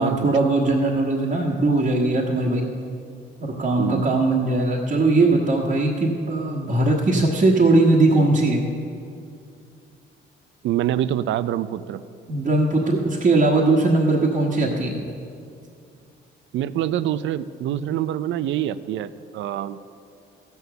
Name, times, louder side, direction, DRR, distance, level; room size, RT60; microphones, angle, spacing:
voice 1, 0.0-2.6 3.4-8.6 12.3-15.0, right 2 dB, 40° right, -4 dB, 1.4 m, -20 dB
voice 2, 3.8-4.1 10.6-12.0 16.5-19.8, right 11 dB, 70° right, 15 dB, 0.5 m, -25 dB
14.5 x 7.0 x 6.7 m, 2.5 s
cardioid pair, 90°, 20 cm